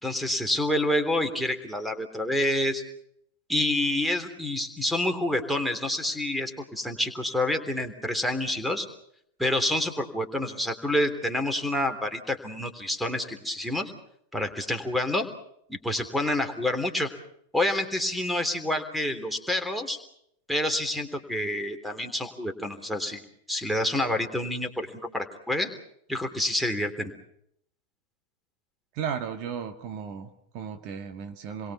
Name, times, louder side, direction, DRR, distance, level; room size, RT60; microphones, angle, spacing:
voice 1, 0.0-2.8 3.5-8.9 9.4-13.9 14.3-15.3 15.7-17.1 17.5-20.0 20.5-23.2 23.5-25.7 26.1-27.1, left 1 dB, ahead, 8 dB, 3.3 m, -28 dB
voice 2, 28.9-31.7, right 7 dB, 40° right, 5 dB, 2.1 m, -35 dB
29.5 x 22.5 x 5.7 m, 0.72 s
figure-of-eight pair, 90°, 0 cm